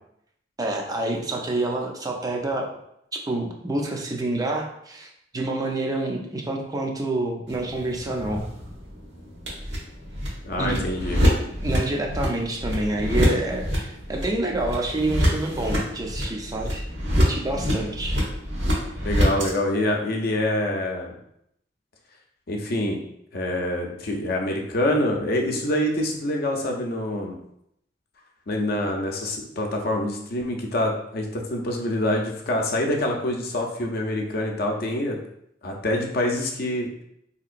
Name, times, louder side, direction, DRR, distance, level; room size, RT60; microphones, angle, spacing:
voice 1, 0.6-2.7 3.3-8.4 10.6-10.9 11.6-16.8 17.1-18.2, right 2 dB, 20° right, 1 dB, 0.4 m, -28 dB
sound 1, 7.5-19.5, equal, 90° right, 1.2 m, -26 dB
voice 2, 10.4-11.2 19.0-21.2 22.5-23.0 23.3-27.4 28.5-35.2 35.6-36.9, left 1 dB, 55° left, 1 dB, 0.6 m, -26 dB
3.7 x 2.8 x 2.5 m, 0.76 s
head